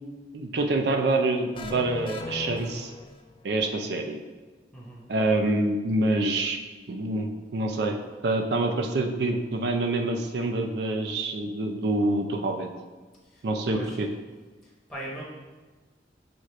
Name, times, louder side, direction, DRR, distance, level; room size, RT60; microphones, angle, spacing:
voice 1, 0.3-2.9 3.4-4.2 5.1-6.6 6.9-7.3 7.5-8.0 8.2-12.7 13.4-14.1, right 2 dB, 65° right, 4 dB, 0.5 m, -26 dB
sound 1, 1.5-3.5, left 3 dB, 30° left, 0.3 m, -37 dB
voice 2, 4.7-5.1 13.2-13.4 13.7-14.0 14.6-15.2, right 1 dB, ahead, -6 dB, 0.9 m, -40 dB
5.9 x 2.5 x 3.1 m, 1.3 s
head